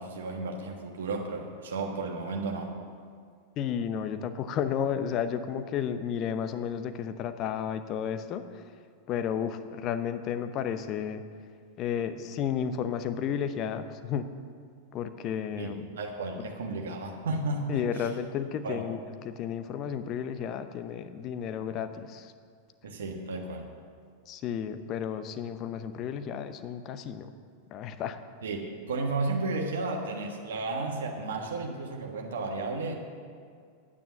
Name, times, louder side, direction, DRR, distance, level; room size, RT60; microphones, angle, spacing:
voice 1, 0.0-2.7 15.6-18.1 18.6-18.8 22.8-23.7 28.4-33.0, right 3 dB, 65° right, 1 dB, 1.3 m, -33 dB
voice 2, 3.6-8.6 9.1-11.2 11.8-14.3 14.9-15.8 17.7-22.3 24.3-27.3 27.7-28.2, left 8 dB, 35° left, 10 dB, 0.7 m, -32 dB
9.8 x 9.3 x 6.7 m, 2.1 s
figure-of-eight pair, 90°, 0 cm